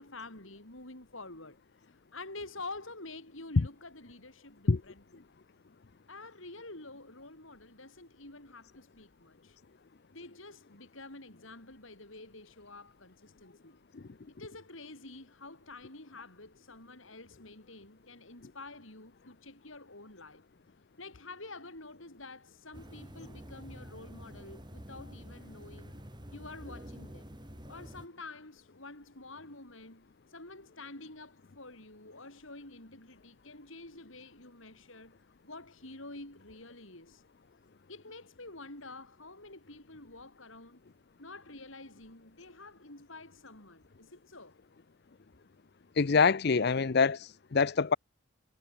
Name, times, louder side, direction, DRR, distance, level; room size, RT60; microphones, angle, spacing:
voice 1, 0.0-5.2 6.1-9.6 10.1-13.8 14.3-20.4 21.0-25.9 26.3-27.3 27.7-35.2 35.4-37.2 37.9-40.8 41.2-44.6, left 2 dB, 70° left, 7.0 m, -48 dB
sound 1, 22.7-28.1, equal, 20° right, 2.7 m, -48 dB
voice 2, 46.0-48.0, left 5 dB, 50° left, 0.6 m, -25 dB
head